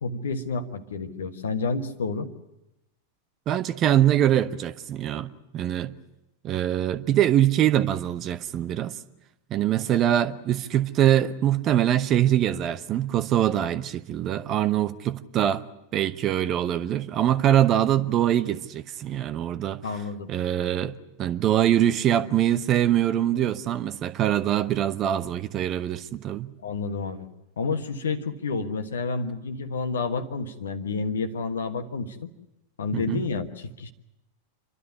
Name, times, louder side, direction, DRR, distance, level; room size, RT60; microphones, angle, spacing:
voice 1, 0.0-2.3 19.8-20.3 26.6-27.2 27.6-32.3 32.8-33.9, left 4 dB, 65° left, 1.4 m, -30 dB
voice 2, 3.5-5.9 6.4-9.0 9.5-15.6 15.9-19.8 20.3-26.5 32.9-33.2, right 11 dB, 30° right, 0.9 m, -23 dB
28.0 x 12.5 x 9.7 m
figure-of-eight pair, 90°, 0 cm